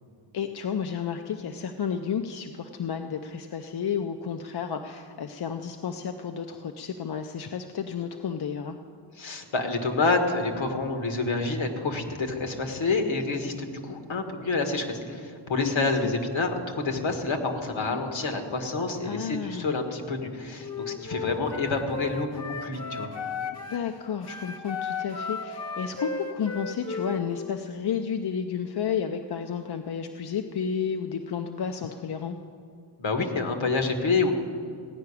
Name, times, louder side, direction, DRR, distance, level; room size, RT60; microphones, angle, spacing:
voice 1, 0.3-8.8 15.6-16.1 19.0-19.8 23.7-32.4, left 7 dB, 55° left, 6 dB, 0.6 m, -32 dB
voice 2, 9.2-23.2 33.0-34.3, left 3 dB, 70° left, 5 dB, 1.5 m, -28 dB
Wind instrument woodwind instrument, 20.6-23.9 24.2-27.6, left 5 dB, 30° left, 0.9 m, -35 dB
15.5 x 5.8 x 9.7 m, 2.4 s
wide cardioid pair, 145°, 48 cm